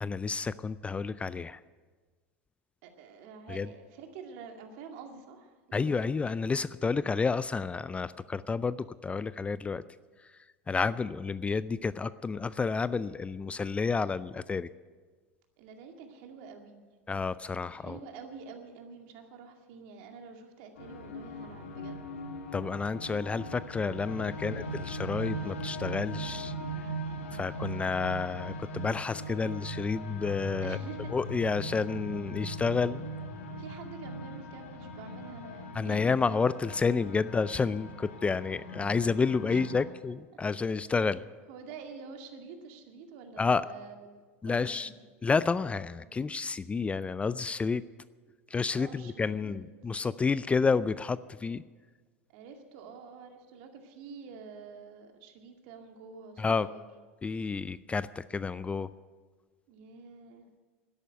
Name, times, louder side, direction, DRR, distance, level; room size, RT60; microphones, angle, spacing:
voice 1, 0.0-1.6 3.5-3.7 5.7-9.8 10.7-14.7 17.1-18.0 22.5-26.5 27.3-30.8 31.1-33.1 35.7-41.2 43.4-43.7 44.4-44.9 45.2-47.8 48.5-51.6 56.4-56.7 57.2-58.9, left 4 dB, 15° left, 17 dB, 0.4 m, -30 dB
voice 2, 2.8-6.0 15.6-16.9 17.7-22.1 30.6-31.1 33.6-36.2 39.5-39.9 40.8-40.9 41.5-44.9 46.0-46.2 48.7-49.6 52.3-56.9 59.7-60.5, right 5 dB, 60° right, 4 dB, 2.2 m, -48 dB
sound 1, 20.8-39.9, equal, 75° left, 2.1 m, -39 dB
12.5 x 11.0 x 9.0 m, 1.4 s
hypercardioid pair, 85°, 7 cm